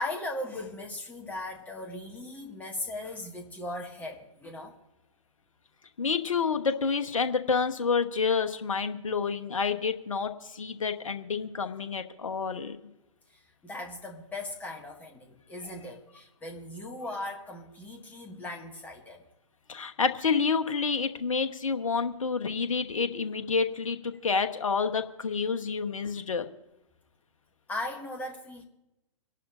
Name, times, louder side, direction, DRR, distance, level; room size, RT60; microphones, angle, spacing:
voice 1, 0.0-4.7 13.6-19.2 27.7-28.6, left 2 dB, 10° left, 1 dB, 1.7 m, -38 dB
voice 2, 6.0-12.8 19.7-26.5, left 5 dB, 70° left, 8 dB, 1.1 m, -29 dB
27.5 x 11.5 x 2.6 m, 0.91 s
figure-of-eight pair, 125°, 18 cm